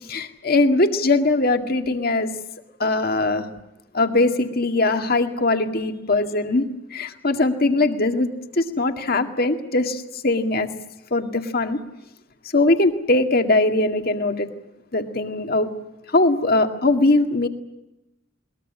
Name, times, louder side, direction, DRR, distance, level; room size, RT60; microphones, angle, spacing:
voice 1, 0.1-2.3 2.8-3.5 3.9-10.7 11.1-11.8 12.5-14.5 14.9-15.7 16.1-17.5, left 2 dB, 55° left, 6 dB, 2.0 m, -21 dB
21.5 x 20.5 x 9.8 m, 0.95 s
head